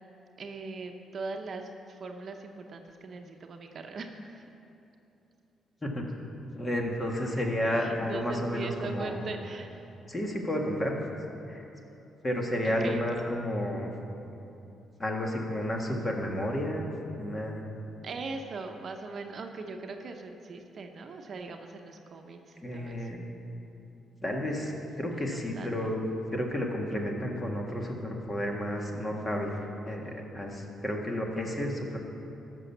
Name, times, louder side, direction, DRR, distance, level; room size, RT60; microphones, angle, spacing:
voice 1, 0.4-4.4 7.7-9.9 12.6-13.2 18.0-23.1 25.1-25.9, right 3 dB, 50° right, 4 dB, 0.8 m, -40 dB
voice 2, 6.5-9.3 10.1-11.0 11.5-11.7 12.2-13.9 15.0-17.7 22.6-23.3 24.2-26.0 26.3-32.0, equal, 25° left, 1 dB, 1.7 m, -31 dB
12.5 x 6.2 x 7.2 m, 2.8 s
cardioid pair, 90°, 0 cm